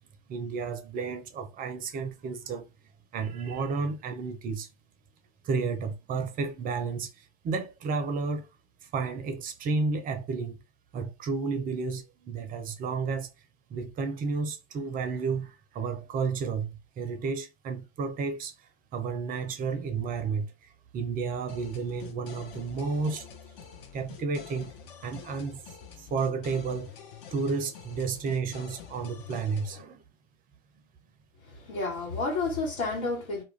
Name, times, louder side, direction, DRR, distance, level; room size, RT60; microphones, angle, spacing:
voice 1, 0.3-2.7 3.1-4.7 5.4-8.5 8.8-10.6 10.9-13.3 13.7-16.7 17.0-18.5 18.9-23.2 23.7-24.7 25.0-25.6 26.0-26.9 27.3-30.0, right 4 dB, 25° right, 0.5 m, -32 dB
sound 1, 21.5-29.8, left 7 dB, 50° left, 0.7 m, -47 dB
voice 2, 31.4-33.4, left 3 dB, 70° left, 1.4 m, -31 dB
2.3 x 2.1 x 3.2 m
hypercardioid pair, 100°, 33 cm